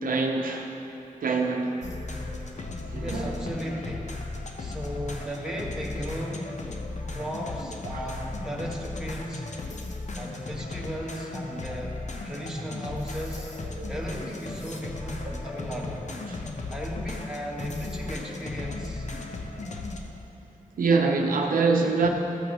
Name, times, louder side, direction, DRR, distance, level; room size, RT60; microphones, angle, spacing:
voice 1, 0.0-0.7 1.2-1.7 2.9-3.3 4.6-4.7 7.9-8.0 13.8-13.9 20.8-22.1, right 4 dB, 80° right, 2 dB, 0.8 m, -24 dB
sound 1, 1.8-20.0, left 2 dB, 55° left, 0.9 m, -36 dB
voice 2, 3.0-4.2 4.6-6.5 7.1-9.5 10.1-13.5 13.9-16.0 16.7-19.1, equal, 5° right, -3 dB, 1.6 m, -35 dB
13.0 x 8.5 x 3.0 m, 3.0 s
cardioid pair, 60°, 14 cm